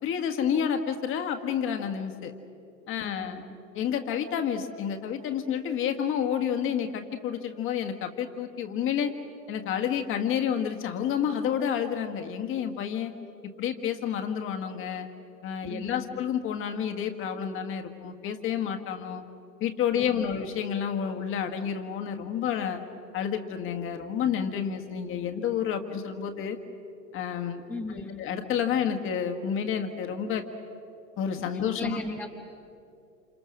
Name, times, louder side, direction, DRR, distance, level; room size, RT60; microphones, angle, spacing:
voice 1, 0.0-2.3 2.9-3.4 3.7-9.1 9.5-13.1 13.6-15.1 15.4-19.2 19.6-22.8 23.1-26.6 27.1-27.6 28.2-30.4 31.2-32.0, left 8 dB, 25° left, 6 dB, 1.7 m, -29 dB
voice 2, 3.0-3.6 15.7-16.2 20.0-20.4 27.7-28.2 31.8-32.3, left 2 dB, 5° left, 1 dB, 1.0 m, -37 dB
28.5 x 27.5 x 6.3 m, 2.6 s
figure-of-eight pair, 100°, 49 cm